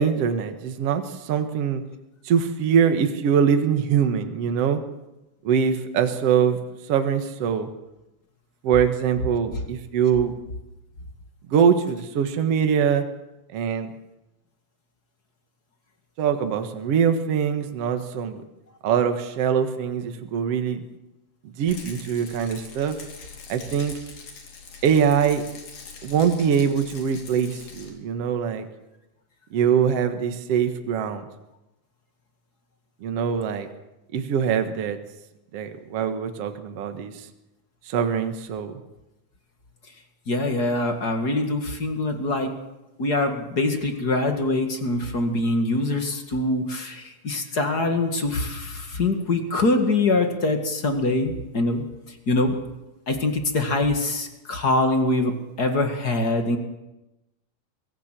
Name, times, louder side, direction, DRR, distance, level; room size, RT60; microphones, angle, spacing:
voice 1, 0.0-1.8 2.2-4.8 5.4-6.6 6.9-7.7 8.6-10.4 11.5-13.1 13.5-13.9 16.2-18.4 18.8-20.8 21.4-23.0 23.5-24.0 24.8-25.4 26.0-28.7 29.5-31.3 33.0-33.7 34.1-35.0 35.5-37.3 37.9-38.8, right 7 dB, 55° right, 7 dB, 2.3 m, -23 dB
Rattle, 21.7-27.9, left 5 dB, 85° left, 4.7 m, -43 dB
voice 2, 40.3-42.5 43.0-51.8 52.3-52.5 53.1-56.6, left 2 dB, 35° left, 5 dB, 2.2 m, -24 dB
23.0 x 17.0 x 7.6 m, 0.97 s
omnidirectional pair, 3.7 m